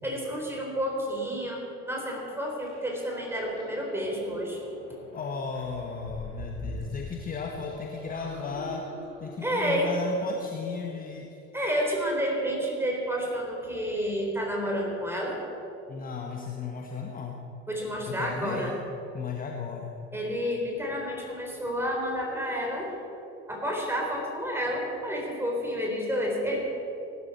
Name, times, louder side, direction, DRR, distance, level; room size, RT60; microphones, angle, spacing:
voice 1, 0.0-4.6 9.4-9.9 11.5-15.4 17.7-18.8 20.1-22.9 23.5-26.6, equal, 5° right, -1 dB, 3.9 m, -30 dB
sound 1, 2.6-11.1, left 1 dB, 85° left, 2.5 m, -44 dB
voice 2, 5.1-8.9 9.2-11.4 15.9-17.4 18.1-18.7 19.1-19.9, left 5 dB, 25° left, 2 dB, 1.2 m, -35 dB
18.5 x 11.5 x 4.3 m, 2.9 s
figure-of-eight pair, 65°, 34 cm